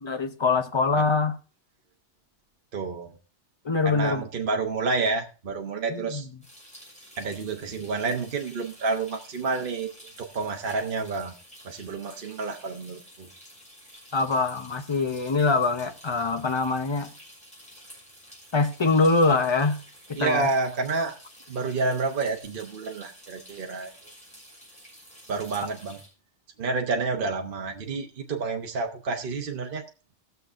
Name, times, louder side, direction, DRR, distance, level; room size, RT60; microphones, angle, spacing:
voice 1, 0.0-1.3 3.6-4.3 5.9-6.2 14.1-17.1 18.5-19.8 20.1-20.5, left 3 dB, 30° left, 0.6 m, -24 dB
voice 2, 2.7-3.1 3.8-6.3 7.2-9.9 10.2-11.3 11.6-13.3 20.2-21.1 21.5-23.9 25.3-26.0 26.6-29.8, right 4 dB, 50° right, 1.1 m, -29 dB
sound 1, 6.4-26.1, equal, 5° left, 6.2 m, -50 dB
20.0 x 6.8 x 2.5 m
omnidirectional pair, 1.2 m